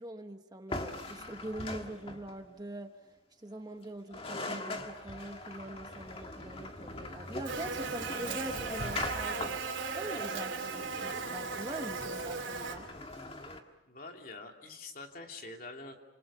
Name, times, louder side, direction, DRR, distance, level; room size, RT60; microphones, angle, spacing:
voice 1, 0.0-2.9 3.4-9.6 10.0-12.9, right 1 dB, 20° right, 5 dB, 1.2 m, -43 dB
sound 1, 0.7-2.5 3.8-3.9 4.1-13.6, left 2 dB, 30° left, 1.9 m, -41 dB
Buzz, 7.4-12.8, right 5 dB, 75° right, 2.9 m, -37 dB
voice 2, 13.9-16.0, left 3 dB, 45° left, 3 dB, 3.0 m, -45 dB
29.0 x 27.5 x 5.6 m, 1.0 s
head